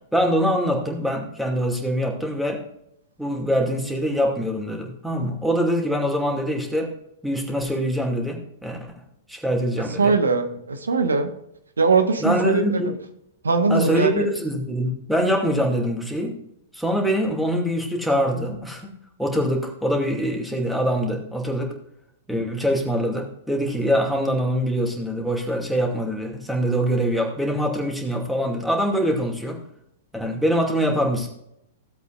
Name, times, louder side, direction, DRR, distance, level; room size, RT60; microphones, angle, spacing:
voice 1, 0.1-2.6 3.2-6.9 7.2-8.9 9.3-10.1 12.2-12.9 13.7-16.4 16.7-21.7 22.3-29.6 30.1-31.3, equal, ahead, 0 dB, 2.5 m, -24 dB
voice 2, 10.0-11.3 11.8-12.9 13.4-14.3, right 4 dB, 75° right, 7 dB, 1.4 m, -21 dB
16.5 x 8.0 x 2.5 m, 0.77 s
figure-of-eight pair, 105°, 0 cm